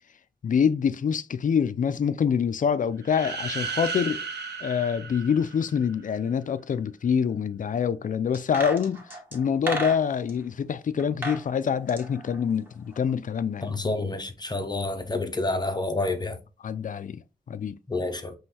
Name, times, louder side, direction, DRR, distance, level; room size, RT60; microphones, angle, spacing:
voice 1, 0.4-4.2 4.6-9.0 9.3-13.8 16.6-17.2 17.5-17.8, left 7 dB, 50° left, 0.4 m, -26 dB
sound 1, 3.0-5.9, right 5 dB, 85° right, 0.8 m, -34 dB
sound 2, 8.3-10.4 11.0-11.4 11.7-13.1 13.4-13.5, right 1 dB, 15° right, 1.6 m, -34 dB
voice 2, 13.6-16.4 17.9-18.3, left 2 dB, 25° left, 0.7 m, -28 dB
5.4 x 3.1 x 2.8 m
wide cardioid pair, 80°, 17 cm